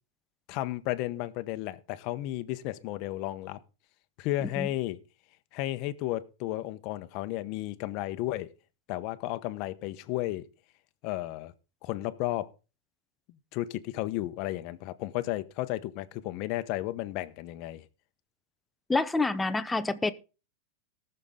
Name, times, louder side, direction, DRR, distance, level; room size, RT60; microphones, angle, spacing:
voice 1, 0.5-3.6 4.2-5.0 5.5-8.5 8.9-10.4 11.0-11.5 11.8-12.5 13.5-17.8, left 16 dB, 40° left, 1.0 m, -33 dB
voice 2, 18.9-20.1, left 3 dB, 5° left, 0.7 m, -27 dB
19.0 x 6.7 x 3.7 m
supercardioid pair, 155°, 0 cm